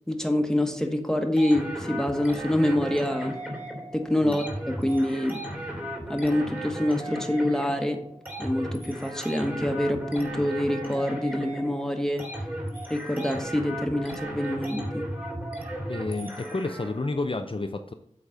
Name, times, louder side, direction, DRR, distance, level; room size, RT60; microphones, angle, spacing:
voice 1, 0.1-3.4 3.9-5.4 6.1-8.0 8.4-12.2 12.9-15.1, left 1 dB, 5° left, 4 dB, 1.3 m, -26 dB
sound 1, 1.4-17.1, right 1 dB, 15° right, 2.4 m, -36 dB
voice 2, 15.9-17.9, left 3 dB, 45° left, 7 dB, 0.5 m, -30 dB
8.1 x 4.1 x 6.1 m, 0.68 s
wide cardioid pair, 55°, 12 cm